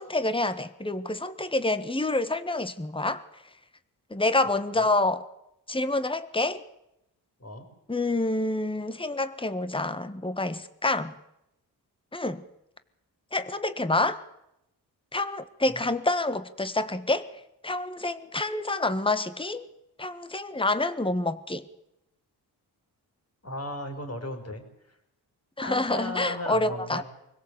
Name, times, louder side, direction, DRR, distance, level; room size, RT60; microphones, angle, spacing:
voice 1, 0.0-3.2 4.1-5.2 5.7-6.6 7.9-11.1 12.1-12.4 13.3-14.2 15.1-17.3 17.6-19.6 20.0-21.6 25.6-27.0, left 2 dB, 10° left, 11 dB, 1.5 m, -27 dB
voice 2, 23.4-24.6 25.6-27.0, left 1 dB, 35° left, 5 dB, 5.1 m, -36 dB
24.5 x 16.5 x 8.2 m, 0.84 s
cardioid pair, 50°, 41 cm